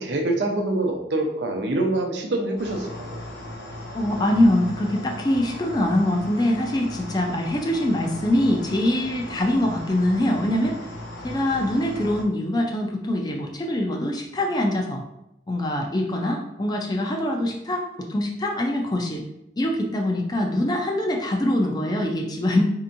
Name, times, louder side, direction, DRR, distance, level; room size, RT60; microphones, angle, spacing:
voice 1, 0.0-3.2, right 2 dB, 80° right, 2 dB, 0.7 m, -25 dB
sound 1, 2.6-12.2, left 1 dB, 75° left, 0.9 m, -37 dB
voice 2, 3.9-10.8 11.2-15.0 15.5-19.2 19.6-22.6, left 1 dB, 20° left, 1 dB, 0.4 m, -23 dB
4.3 x 2.8 x 2.6 m, 0.85 s
head